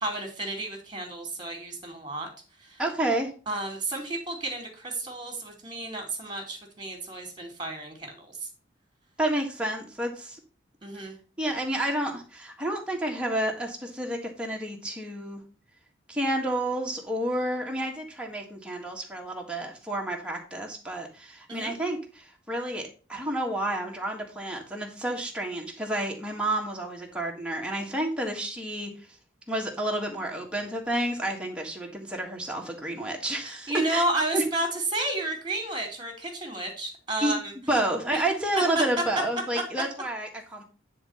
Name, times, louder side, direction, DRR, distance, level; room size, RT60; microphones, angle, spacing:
voice 1, 0.0-2.3 2.6-2.8 3.5-8.5 10.8-11.2 21.5-21.7 33.4-37.5 38.1-38.2 38.7-38.8, right 2 dB, 25° right, 3 dB, 2.4 m, -32 dB
voice 2, 2.8-3.3 9.2-10.4 11.4-15.4 16.1-28.9 29.5-34.0 34.3-34.4 37.2-37.3 37.7-40.6, right 1 dB, 5° right, 0 dB, 1.6 m, -30 dB
9.9 x 3.7 x 5.5 m, 0.37 s
head